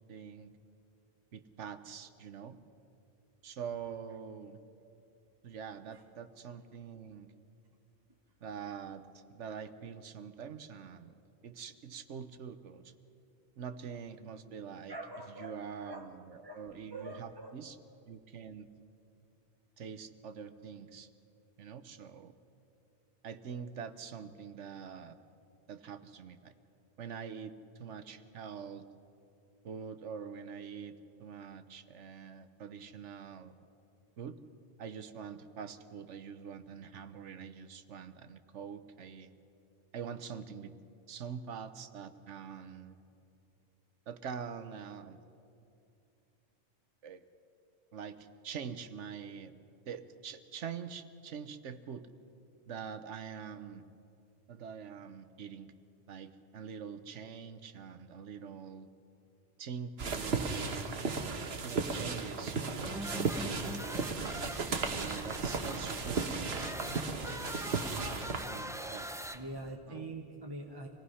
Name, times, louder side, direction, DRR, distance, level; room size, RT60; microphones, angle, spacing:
voice 1, 0.1-0.5 1.3-2.6 3.4-4.6 5.4-7.3 8.4-11.2 11.4-12.9 13.6-15.0 15.4-17.8 18.1-18.7 19.8-21.1 21.6-22.3 23.2-25.2 25.7-26.5 27.0-28.9 29.6-33.5 34.2-34.4 34.8-39.3 39.9-40.7 41.1-43.0 44.1-45.2 47.0-47.2 47.9-49.5 49.9-52.1 52.7-53.8 54.5-55.7 56.1-58.9 59.6-61.1 61.6-62.6 63.0-64.1 65.0-66.9 68.4-69.1 69.9-70.0, right 7 dB, 85° right, 11 dB, 1.2 m, -44 dB
voice 2, 14.9-16.1 16.4-17.5 69.3-70.9, right 2 dB, 20° right, 2 dB, 1.0 m, -44 dB
sound 1, 60.0-68.4, right 4 dB, 60° right, 1.4 m, -35 dB
sound 2, 62.8-69.8, equal, 5° right, 0.3 m, -43 dB
25.5 x 18.0 x 5.6 m, 2.6 s
omnidirectional pair, 1.2 m